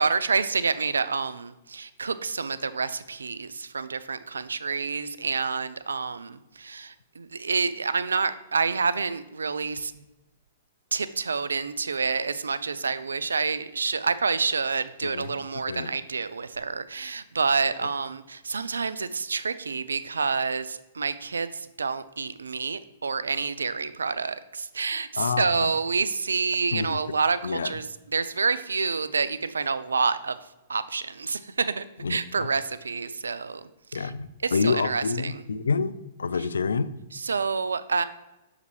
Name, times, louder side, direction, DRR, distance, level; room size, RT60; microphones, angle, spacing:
voice 1, 0.0-10.0 10.9-27.9 28.1-30.4 30.7-34.1 34.4-35.4 37.1-38.0, right 4 dB, 80° right, 14 dB, 0.3 m, -28 dB
voice 2, 15.0-15.4 15.7-15.9 25.2-25.7 26.7-27.0 27.4-27.7 32.0-32.5 33.9-35.9 36.2-36.9, left 5 dB, 80° left, 15 dB, 0.3 m, -28 dB
6.6 x 4.9 x 3.1 m, 0.97 s
figure-of-eight pair, 110°, 0 cm